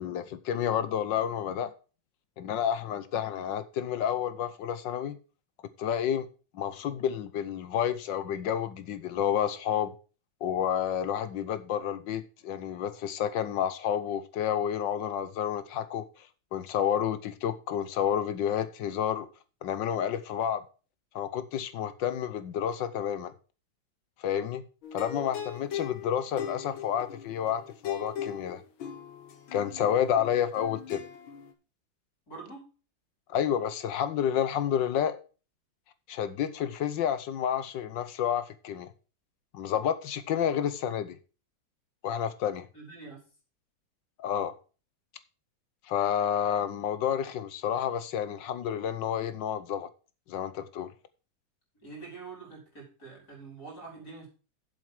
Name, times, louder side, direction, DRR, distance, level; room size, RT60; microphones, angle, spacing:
voice 1, 0.0-1.7 2.4-5.2 5.8-6.3 6.5-9.9 10.4-16.1 16.5-19.3 19.6-20.6 21.1-23.3 24.2-24.6 24.9-28.6 29.5-31.0 33.3-35.2 36.1-38.9 39.5-41.2 42.0-42.7 44.2-44.5 45.9-49.9 50.3-50.9, left 9 dB, 75° left, 1.5 m, -30 dB
sound 1, 24.8-31.5, left 8 dB, 90° left, 2.1 m, -39 dB
voice 2, 32.3-32.7 42.7-43.2 51.8-54.3, right 4 dB, 50° left, 5.2 m, -45 dB
7.8 x 7.3 x 5.9 m
omnidirectional pair, 2.1 m